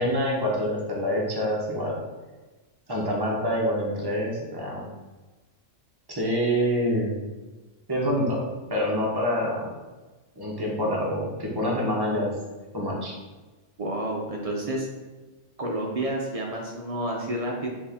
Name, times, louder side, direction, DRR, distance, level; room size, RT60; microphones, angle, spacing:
voice 1, 0.0-2.0 2.9-4.9 6.1-7.2 7.9-8.4 8.7-9.7 10.4-12.3 12.7-13.1, equal, 20° right, -3 dB, 0.7 m, -26 dB
voice 2, 13.8-14.9 15.6-17.7, right 1 dB, 55° right, 0 dB, 0.4 m, -29 dB
4.3 x 2.9 x 3.5 m, 1.2 s
omnidirectional pair, 1.3 m